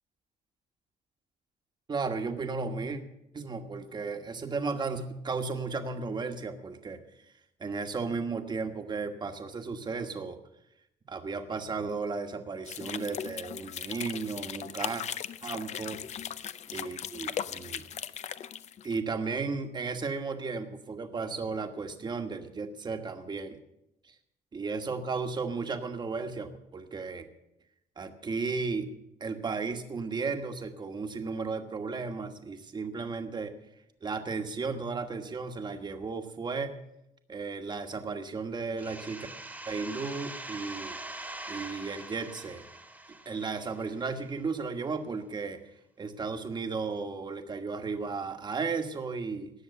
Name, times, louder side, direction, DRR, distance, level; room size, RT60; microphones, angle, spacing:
voice 1, 1.9-3.0 3.3-7.0 7.6-10.4 11.1-15.0 15.4-16.0 16.7-17.9 18.8-23.6 24.0-24.1 24.5-27.3 28.0-28.9 29.2-33.5 34.0-36.7 37.3-39.3 39.7-41.0 41.5-42.6 43.2-45.6 46.0-49.5, right 4 dB, 30° right, 6 dB, 1.3 m, -34 dB
sound 1, 12.7-19.0, left 9 dB, 45° left, 0.6 m, -38 dB
sound 2, 38.8-44.3, right 2 dB, 10° right, 1.5 m, -43 dB
18.5 x 7.2 x 6.8 m, 0.83 s
cardioid pair, 135°, 16 cm